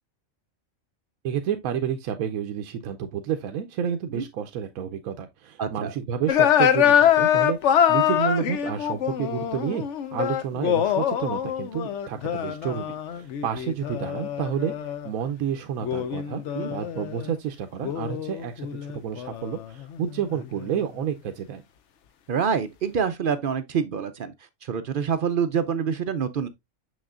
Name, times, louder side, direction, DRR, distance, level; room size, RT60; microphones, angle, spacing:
voice 1, 1.2-9.9 10.1-14.7 15.0-16.4 16.7-21.6, right 8 dB, 85° right, 1.1 m, -30 dB
voice 2, 5.6-5.9 16.5-16.7 22.3-24.3 24.6-26.5, right 7 dB, 60° right, 0.5 m, -26 dB
sound 1, 6.3-15.1 15.8-17.4 17.8-20.7, left 9 dB, 65° left, 0.9 m, -24 dB
6.5 x 6.2 x 2.4 m
omnidirectional pair, 1.4 m